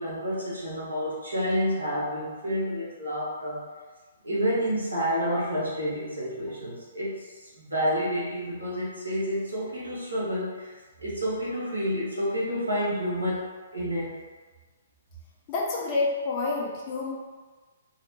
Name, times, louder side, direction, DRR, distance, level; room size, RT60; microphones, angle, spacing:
voice 1, 0.0-3.6 4.2-10.7 11.0-13.5 13.7-14.2, equal, 75° right, -6 dB, 0.8 m, -29 dB
voice 2, 15.5-17.1, left 3 dB, 30° left, -3 dB, 0.5 m, -28 dB
2.7 x 2.0 x 2.8 m, 1.3 s
figure-of-eight pair, 120°, 0 cm